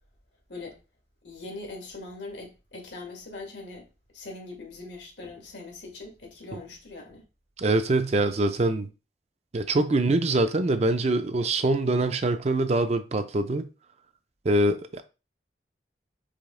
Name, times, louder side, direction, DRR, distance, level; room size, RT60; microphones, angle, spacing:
voice 1, 1.2-3.9 4.1-7.2, left 3 dB, 90° left, 1.7 m, -41 dB
voice 2, 7.6-8.9 9.5-13.7 14.4-15.0, right 2 dB, 35° right, 0.4 m, -24 dB
5.0 x 2.8 x 3.7 m
head